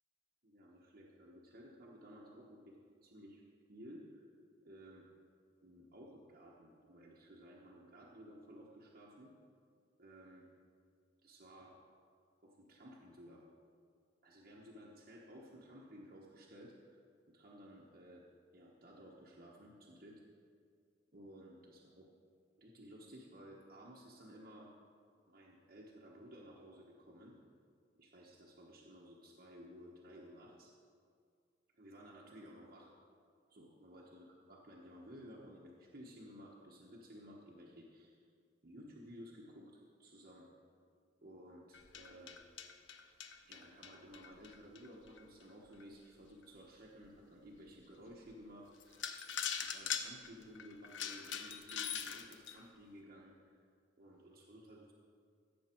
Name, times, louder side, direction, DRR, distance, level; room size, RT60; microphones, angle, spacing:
voice 1, 0.4-2.8 3.0-3.4 3.7-4.3 4.6-5.1 5.6-9.3 10.0-10.5 11.2-11.8 12.4-13.4 14.2-17.0 17.3-18.2 18.5-20.2 21.1-22.1 22.6-24.7 25.3-27.4 28.0-30.7 31.7-32.9 33.5-38.2 38.6-40.5 41.2-42.4 43.4-49.3 49.6-53.6 54.0-54.9, equal, 55° right, -4 dB, 1.2 m, -55 dB
sound 1, 41.7-45.2 45.8-45.9 46.4-46.5 47.0-47.1 48.3-48.4 48.8-52.6, left 7 dB, 85° left, 0.8 m, -42 dB
16.0 x 7.0 x 4.5 m, 2.2 s
head